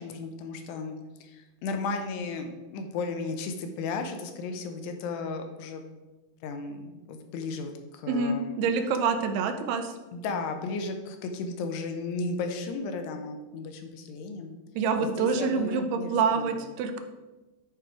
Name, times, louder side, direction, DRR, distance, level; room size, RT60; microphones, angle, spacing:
voice 1, 0.0-5.8 6.4-8.6 10.1-14.6 15.0-16.7, left 4 dB, 80° left, 6 dB, 2.9 m, -35 dB
voice 2, 8.1-9.9 14.8-17.0, right 5 dB, 85° right, 7 dB, 2.6 m, -26 dB
10.5 x 4.8 x 4.6 m, 1.1 s
omnidirectional pair, 4.9 m